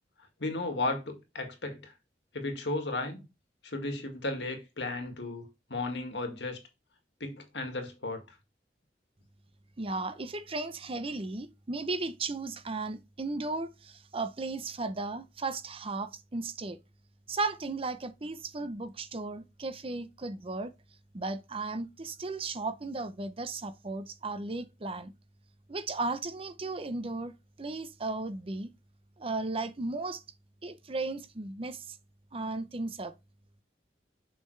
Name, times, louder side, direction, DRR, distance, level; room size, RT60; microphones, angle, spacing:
voice 1, 0.4-1.9 2.3-3.3 3.6-6.6 7.2-8.2, left 2 dB, 85° left, 2.0 m, -34 dB
voice 2, 9.8-16.8 17.3-20.7 21.1-25.1 25.7-27.3 27.6-28.7 29.2-30.2 30.6-32.0 32.3-33.1, right 3 dB, 35° right, 0.7 m, -35 dB
7.0 x 5.5 x 3.2 m
head